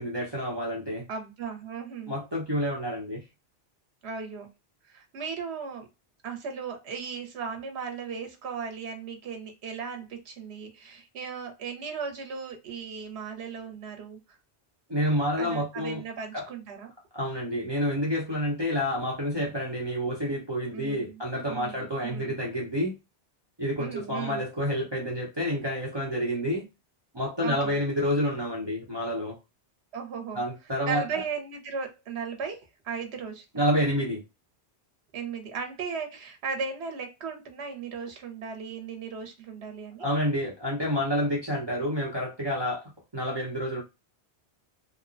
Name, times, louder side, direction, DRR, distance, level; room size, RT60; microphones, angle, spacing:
voice 1, 0.0-1.0 2.1-3.2 14.9-16.0 16.3-16.5 17.1-22.9 23.6-26.6 27.1-29.4 30.3-31.1 33.5-34.2 40.0-43.8, equal, 25° right, 0.8 m, -29 dB
voice 2, 1.1-2.1 4.0-4.5 4.9-5.9 6.2-14.2 15.4-16.9 20.7-21.2 21.5-22.3 23.8-24.4 27.4-27.8 29.9-30.4 30.9-33.7 35.1-40.1, right 6 dB, 90° right, 1.0 m, -36 dB
2.9 x 2.1 x 2.4 m
omnidirectional pair, 1.1 m